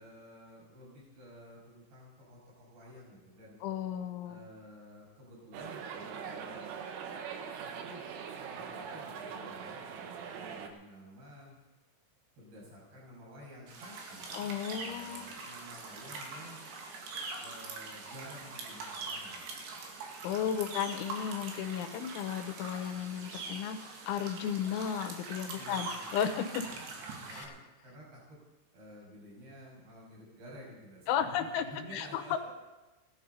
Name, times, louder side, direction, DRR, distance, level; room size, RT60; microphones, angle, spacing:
voice 1, 0.0-3.6 4.3-6.7 7.6-11.6 12.4-16.7 17.4-19.8 20.5-20.8 25.5-26.8 27.2-28.4 28.7-32.5, equal, 50° right, -4 dB, 7.8 m, -52 dB
voice 2, 3.6-4.4 14.3-15.3 20.2-26.6 27.3-27.4 31.1-31.6 31.9-32.2, left 9 dB, 80° left, 7 dB, 3.3 m, -34 dB
sound 1, 5.5-10.7, right 6 dB, 85° right, 3.8 m, -42 dB
sound 2, 13.7-27.4, right 3 dB, 65° right, 4.1 m, -43 dB
17.0 x 12.5 x 5.4 m, 1.1 s
omnidirectional pair, 5.7 m